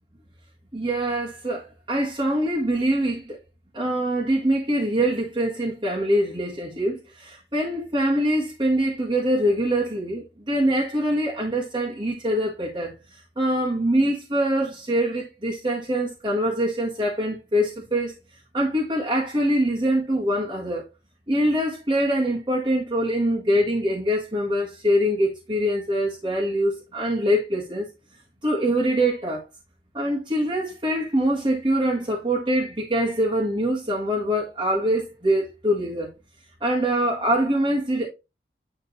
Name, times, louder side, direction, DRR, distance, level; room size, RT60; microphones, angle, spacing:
voice 1, 0.7-3.4 3.7-18.2 18.5-20.8 21.3-27.9 28.4-29.4 29.9-36.1 36.6-38.1, equal, 25° right, 1.6 m, -24 dB
9.6 x 3.6 x 3.1 m
head